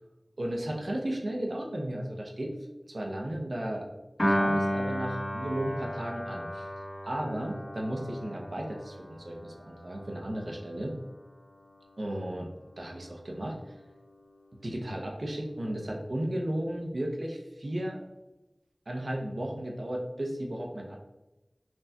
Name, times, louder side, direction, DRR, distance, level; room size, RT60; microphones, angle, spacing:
voice 1, 0.4-2.5 2.9-3.9 4.3-6.7 7.0-10.9 12.0-13.8 14.6-18.0 18.9-21.0, right 1 dB, 80° right, 0 dB, 0.7 m, -34 dB
Piano, 4.2-10.6, equal, 70° left, 1.4 m, -33 dB
5.8 x 2.7 x 2.2 m, 1.0 s
wide cardioid pair, 40°, 0 cm